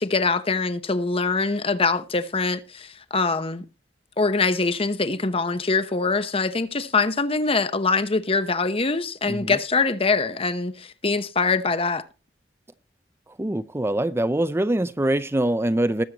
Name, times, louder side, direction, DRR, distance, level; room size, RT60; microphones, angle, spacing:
voice 1, 0.0-3.6 4.2-12.0, left 4 dB, 35° left, 1.0 m, -23 dB
voice 2, 9.3-9.6 13.3-16.0, right 1 dB, 15° right, 0.5 m, -24 dB
20.0 x 7.7 x 2.9 m
head